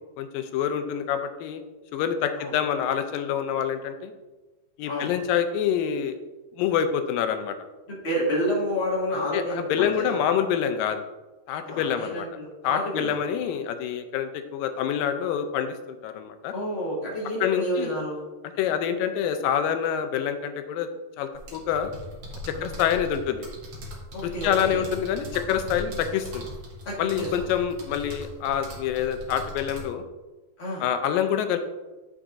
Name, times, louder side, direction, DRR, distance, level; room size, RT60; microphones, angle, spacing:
voice 1, 0.2-1.6 1.9-4.1 4.8-6.2 6.6-7.6 9.3-11.0 11.5-12.3 12.6-16.5 17.4-17.9 18.6-20.9 21.2-21.9 22.5-23.5 24.2-26.5 27.0-30.0 30.8-31.6, left 8 dB, 90° left, 8 dB, 2.3 m, -26 dB
voice 2, 7.9-10.2 11.6-13.2 16.5-18.3 18.6-18.8 22.5-22.7 24.1-24.8 26.8-27.3 30.6-30.9, equal, 35° left, -5 dB, 1.0 m, -30 dB
sound 1, 21.3-29.8, left 1 dB, 50° right, 1.6 m, -39 dB
8.6 x 6.6 x 2.5 m, 1.2 s
omnidirectional pair, 3.9 m